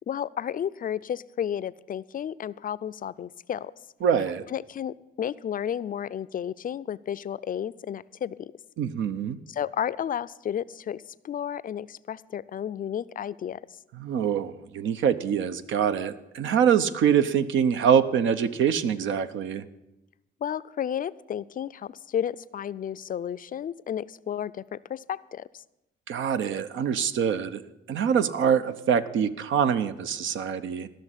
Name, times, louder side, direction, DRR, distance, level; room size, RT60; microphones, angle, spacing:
voice 1, 0.1-3.7 4.5-8.5 9.5-13.6 20.4-25.6, left 9 dB, 45° left, 16 dB, 0.4 m, -32 dB
voice 2, 4.0-4.4 8.8-9.4 14.0-19.6 26.1-27.6 27.9-30.9, right 8 dB, 75° right, 11 dB, 0.8 m, -24 dB
13.5 x 6.3 x 9.8 m, 0.91 s
cardioid pair, 90°, 20 cm